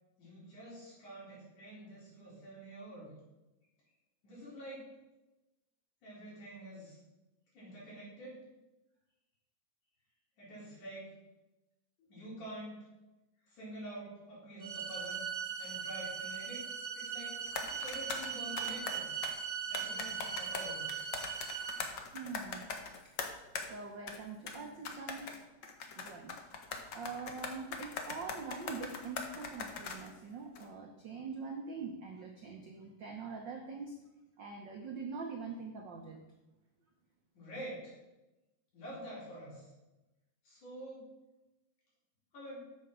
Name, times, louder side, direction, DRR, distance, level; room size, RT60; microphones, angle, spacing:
voice 1, 0.2-3.1 4.2-4.9 6.0-7.0 7.5-8.4 10.4-11.2 12.0-12.8 13.4-15.2 15.6-17.4 17.8-19.1 19.7-20.9 37.3-38.0 38.7-39.7 40.4-41.1 42.3-42.6, right 1 dB, 85° left, -6 dB, 5.6 m, -47 dB
sound 1, 14.6-21.7, right 7 dB, 30° right, 1.5 m, -39 dB
sound 2, 17.5-19.3 19.7-23.7 24.1-24.2 24.5-24.6 24.8-30.1 30.6-30.7, left 5 dB, 70° left, 1.0 m, -41 dB
voice 2, 21.9-22.7 23.0-23.2 23.7-25.4 25.9-26.4 26.9-34.0 34.4-36.2, right 4 dB, 75° right, 2 dB, 1.0 m, -44 dB
8.4 x 7.2 x 6.3 m, 1.0 s
omnidirectional pair, 3.4 m